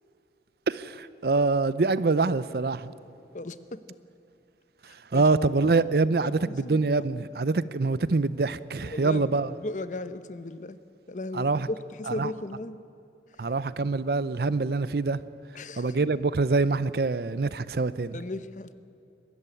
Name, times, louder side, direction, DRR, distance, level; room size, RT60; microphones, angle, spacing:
voice 1, 0.7-2.9 5.1-9.5 11.3-11.7 12.1-12.3 13.4-15.2 15.8-18.2, right 3 dB, 60° right, 17 dB, 0.5 m, -25 dB
voice 2, 3.3-3.8 5.1-5.2 6.2-7.0 8.8-10.8 11.1-12.8 15.5-15.9 18.1-18.7, left 2 dB, 45° left, 13 dB, 0.7 m, -36 dB
22.0 x 13.5 x 9.7 m, 2.7 s
head